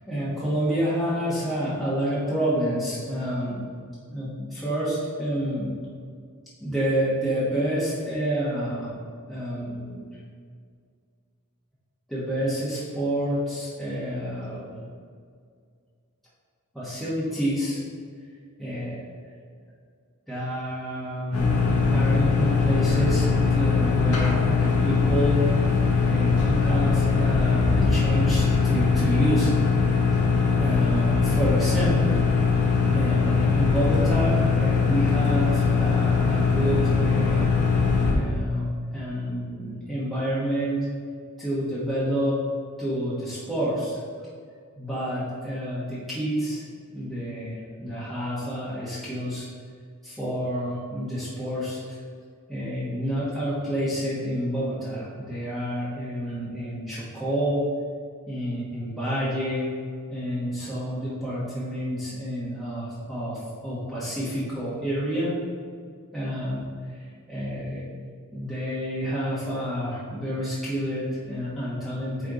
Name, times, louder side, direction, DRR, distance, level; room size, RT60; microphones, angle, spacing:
voice 1, 0.1-3.7 4.1-5.7 6.6-8.9 9.3-10.0 12.1-14.8 16.7-17.8 18.6-19.0 20.3-25.5 26.1-29.5 30.3-32.2 32.9-37.5 38.1-38.7 38.9-40.9 41.4-42.4 42.8-44.0 44.8-46.6 46.9-49.5 50.0-52.0 52.5-57.6 58.3-59.7 60.1-65.3 66.1-66.6 66.9-67.8 68.3-72.3, equal, ahead, -10 dB, 1.3 m, -29 dB
sound 1, 21.3-38.1, left 4 dB, 85° left, 1.3 m, -21 dB
8.5 x 3.5 x 3.9 m, 2.1 s
head